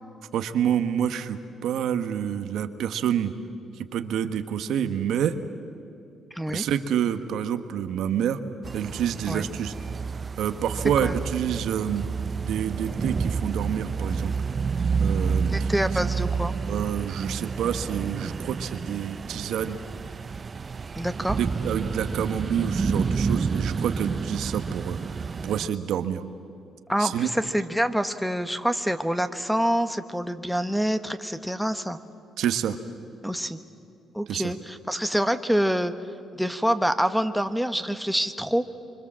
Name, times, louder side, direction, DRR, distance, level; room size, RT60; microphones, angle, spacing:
voice 1, 0.3-3.3 3.8-5.4 6.5-8.4 8.7-9.7 10.4-12.1 12.4-14.3 15.0-15.7 16.7-19.8 21.4-26.2 27.0-27.3 32.4-32.8 34.3-34.5, right 9 dB, 80° right, 10 dB, 1.2 m, -28 dB
voice 2, 6.3-6.6 9.3-9.5 11.0-11.2 15.4-16.5 21.0-21.4 26.9-32.0 33.2-33.6 34.1-35.9 36.3-38.7, equal, ahead, 7 dB, 1.2 m, -26 dB
sound 1, 8.6-25.7, right 5 dB, 35° right, 0.5 m, -29 dB
25.5 x 25.0 x 7.5 m, 2.6 s
cardioid pair, 90°, 0 cm